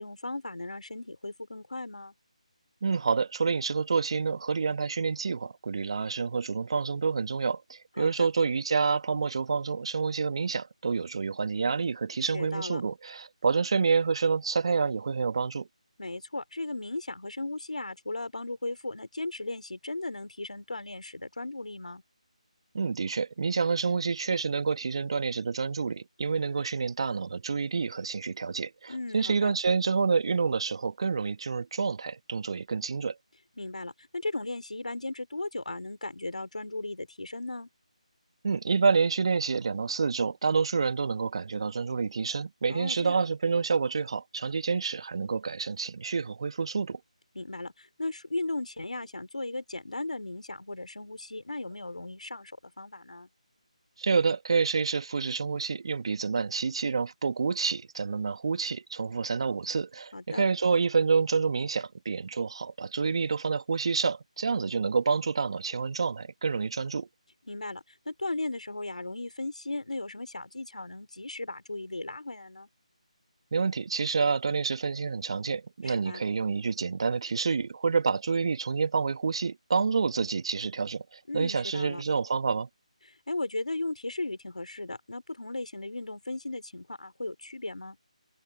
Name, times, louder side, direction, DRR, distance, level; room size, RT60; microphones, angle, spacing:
voice 1, 0.0-2.1 8.0-8.3 12.3-12.8 16.0-22.0 28.9-29.5 33.6-37.7 42.7-43.2 47.3-53.3 60.1-60.4 67.5-72.7 75.8-76.2 81.3-82.0 83.0-88.0, left 2 dB, 75° left, 4.4 m, -36 dB
voice 2, 2.8-15.7 22.7-33.2 38.4-47.0 54.0-67.1 73.5-82.7, right 5 dB, 50° right, 2.0 m, -28 dB
figure-of-eight pair, 160°, 4 cm